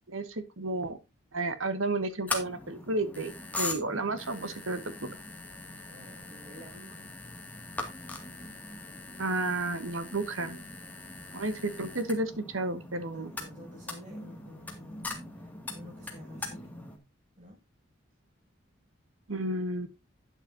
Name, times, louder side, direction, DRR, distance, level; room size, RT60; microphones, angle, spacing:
voice 1, 0.1-1.0 1.3-5.1 9.2-10.6 11.3-13.3 19.3-19.9, right 2 dB, 80° right, 1.6 m, -32 dB
sound 1, 2.3-17.0, left 2 dB, 10° left, 2.1 m, -41 dB
voice 2, 5.9-7.2 13.1-16.7 17.4-17.6, equal, 35° right, 6.7 m, -50 dB
12.0 x 9.1 x 2.7 m
head